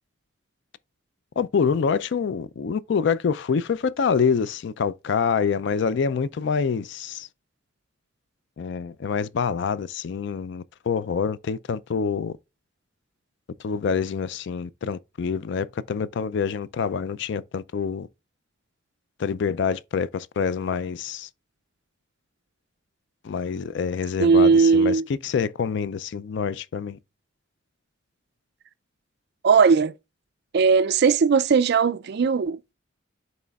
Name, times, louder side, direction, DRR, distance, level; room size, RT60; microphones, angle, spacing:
voice 1, 1.4-7.3 8.6-12.3 13.6-18.1 19.2-21.3 23.2-27.0, left 6 dB, 65° left, 0.4 m, -26 dB
voice 2, 24.2-25.0 29.4-29.9 30.5-32.6, right 5 dB, 55° right, 0.4 m, -18 dB
10.5 x 4.2 x 2.3 m
head